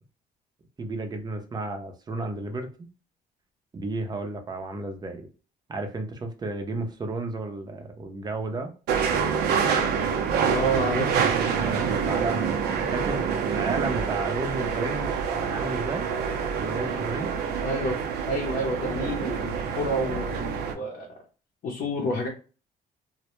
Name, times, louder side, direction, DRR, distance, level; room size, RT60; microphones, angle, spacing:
voice 1, 0.8-2.7 3.7-5.3 5.7-8.7 11.5-16.1 16.6-17.3, right 2 dB, 25° right, 5 dB, 0.5 m, -32 dB
sound 1, 8.9-20.7, right 6 dB, 75° right, 0.5 m, -27 dB
voice 2, 10.5-11.1 17.6-18.0 18.3-21.1 21.6-22.3, right 1 dB, 55° left, -1 dB, 0.6 m, -29 dB
2.1 x 2.0 x 2.9 m, 0.35 s
cardioid pair, 110°, 17 cm